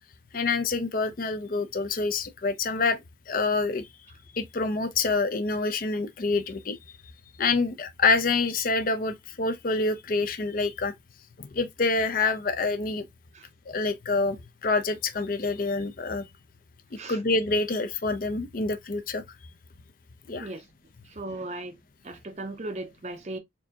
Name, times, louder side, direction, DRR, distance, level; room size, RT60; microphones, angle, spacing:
voice 1, 0.3-3.9 4.3-6.8 7.4-10.9 11.4-13.1 13.7-16.3 16.9-19.2 20.3-20.5, left 3 dB, 45° left, 0.5 m, -27 dB
voice 2, 20.3-20.6 21.0-21.8 22.0-23.4, right 2 dB, 35° right, 0.5 m, -37 dB
4.3 x 2.6 x 2.7 m
head